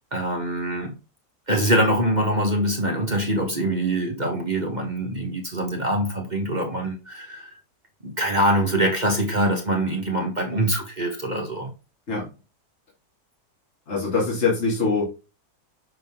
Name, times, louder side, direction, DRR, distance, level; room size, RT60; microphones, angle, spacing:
voice 1, 0.1-0.9 1.5-7.5 8.0-11.7, right 1 dB, 30° right, 1.3 m, -24 dB
voice 2, 13.9-15.1, left 4 dB, 45° left, 2.5 m, -23 dB
6.8 x 3.9 x 3.6 m
omnidirectional pair, 1.8 m